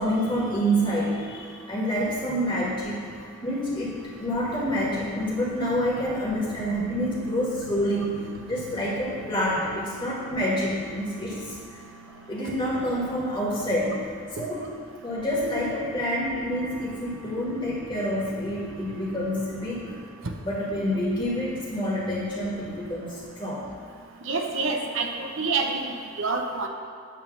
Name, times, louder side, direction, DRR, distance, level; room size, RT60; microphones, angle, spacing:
voice 1, 0.0-8.2 8.5-11.9 12.3-14.0 14.3-14.7 15.0-20.0 20.4-23.7, equal, 20° left, -6 dB, 1.7 m, -28 dB
Bass guitar, 6.7-13.0, right 2 dB, 45° left, 1.6 m, -47 dB
voice 2, 24.3-25.1 25.4-25.9 26.2-26.7, right 4 dB, 75° right, 3 dB, 0.7 m, -26 dB
8.6 x 3.4 x 6.7 m, 2.3 s
head